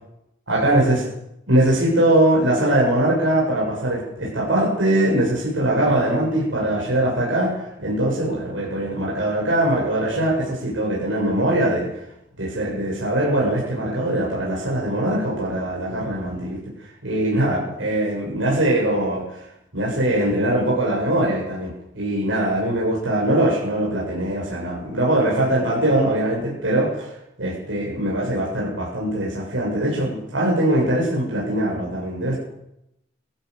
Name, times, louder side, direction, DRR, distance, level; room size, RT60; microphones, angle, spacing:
voice 1, 0.5-1.1 1.5-12.0 12.4-16.6 17.0-19.4 19.7-27.1 27.4-32.3, right 1 dB, 75° right, -4 dB, 7.7 m, -21 dB
23.0 x 15.0 x 8.3 m, 0.84 s
head